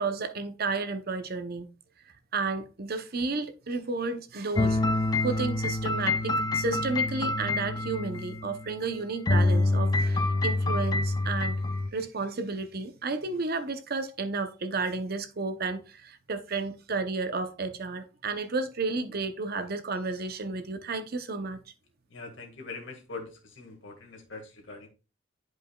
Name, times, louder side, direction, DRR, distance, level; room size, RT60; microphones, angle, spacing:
voice 1, 0.0-1.7 2.3-4.8 5.1-11.6 11.9-21.6, right 3 dB, 50° right, 0.8 m, -32 dB
sound 1, 4.6-8.9 9.3-11.9, left 2 dB, 20° left, 0.4 m, -26 dB
voice 2, 22.1-24.9, left 3 dB, 65° left, 1.8 m, -42 dB
10.5 x 4.9 x 2.3 m
head